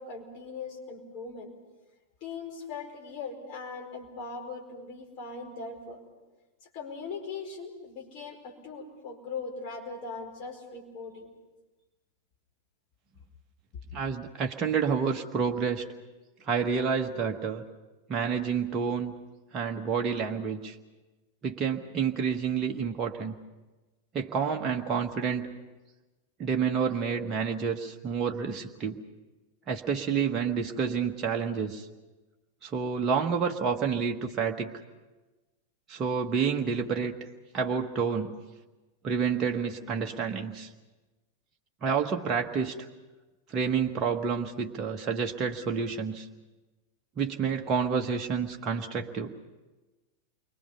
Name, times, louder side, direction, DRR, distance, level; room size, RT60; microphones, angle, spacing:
voice 1, 0.0-1.5 2.2-6.0 6.7-11.3, left 4 dB, 45° left, 1 dB, 4.9 m, -40 dB
voice 2, 13.9-15.9 16.5-17.6 18.1-19.1 19.5-20.7 21.4-23.3 24.1-25.5 26.4-29.0 29.7-31.9 32.6-34.7 35.9-37.1 37.5-38.3 39.0-40.7 41.8-42.8 43.5-46.3 47.2-49.3, right 6 dB, 25° right, 2 dB, 1.3 m, -29 dB
29.0 x 23.5 x 5.6 m, 1.2 s
figure-of-eight pair, 90°, 0 cm